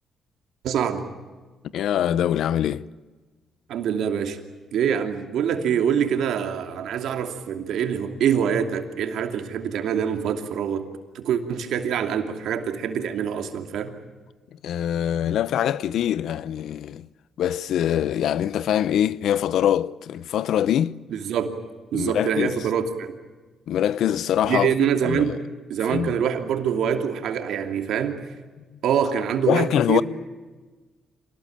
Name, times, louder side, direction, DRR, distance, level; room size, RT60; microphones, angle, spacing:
voice 1, 0.6-1.1 3.7-4.4 4.7-10.9 11.1-13.9 21.1-21.5 21.9-23.1 24.4-25.4 25.7-28.3 28.8-30.0, right 8 dB, 75° right, 2.8 m, -25 dB
voice 2, 1.7-2.9 14.6-17.1 17.4-21.0 21.9-22.7 23.7-24.7 25.0-25.4 25.9-26.2 29.5-30.0, left 10 dB, 75° left, 0.7 m, -23 dB
26.5 x 19.0 x 8.9 m
cardioid pair, 90°, 0 cm